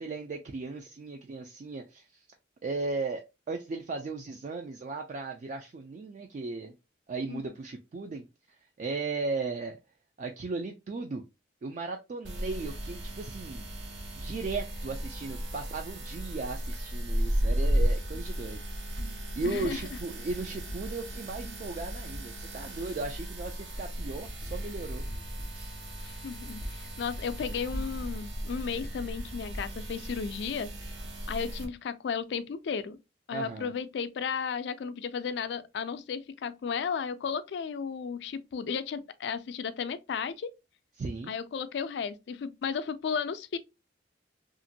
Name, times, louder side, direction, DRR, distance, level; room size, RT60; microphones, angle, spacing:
voice 1, 0.0-2.1 2.6-6.7 7.1-8.2 8.8-9.8 10.2-11.2 11.6-13.7 14.2-19.0 19.4-25.1 25.5-25.7 33.3-33.7 41.0-41.3, right 3 dB, 40° right, 0.3 m, -36 dB
sound 1, 12.2-31.6, equal, 75° right, 0.9 m, -35 dB
voice 2, 19.4-19.8 26.0-30.7 31.3-33.0 33.3-40.5 41.3-43.6, left 6 dB, 65° left, 0.3 m, -34 dB
2.9 x 2.5 x 2.6 m
head